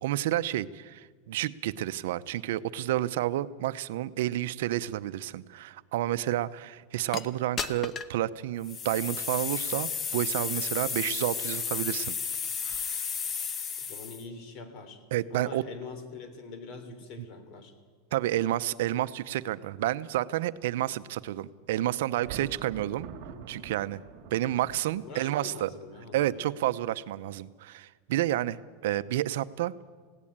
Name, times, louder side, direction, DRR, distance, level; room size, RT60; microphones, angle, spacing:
voice 1, 0.0-12.2 12.6-13.0 15.1-15.6 18.1-23.1 23.5-24.0 24.3-25.7 26.1-29.8, right 14 dB, 70° right, 14 dB, 0.7 m, -30 dB
sound 1, 7.1-7.2 7.6-8.1 8.6-14.2, left 6 dB, 25° left, 0.9 m, -33 dB
voice 2, 13.8-15.0 15.3-17.7 25.0-26.4, left 4 dB, 40° left, 8 dB, 3.3 m, -44 dB
Thunder, 22.1-25.5, right 7 dB, 45° right, 2.4 m, -45 dB
19.5 x 17.0 x 8.8 m, 1.5 s
supercardioid pair, 155°, 0 cm